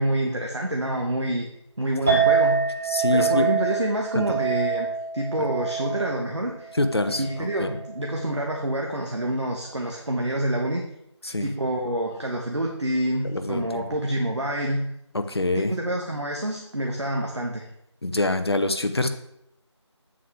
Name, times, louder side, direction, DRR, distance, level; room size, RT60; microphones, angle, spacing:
voice 1, 0.0-1.5 1.8-2.6 3.1-6.7 7.1-10.9 11.4-14.8 15.7-17.6, right 1 dB, 70° right, 1 dB, 1.3 m, -27 dB
Chink clink, 2.1-8.4, right 6 dB, 5° right, 1.0 m, -26 dB
voice 2, 2.9-3.5 4.1-4.4 5.4-5.5 6.7-7.8 11.2-11.5 13.2-13.8 15.1-15.7 18.0-19.1, left 2 dB, 60° left, 8 dB, 0.9 m, -25 dB
8.2 x 7.4 x 3.4 m, 0.79 s
figure-of-eight pair, 170°, 15 cm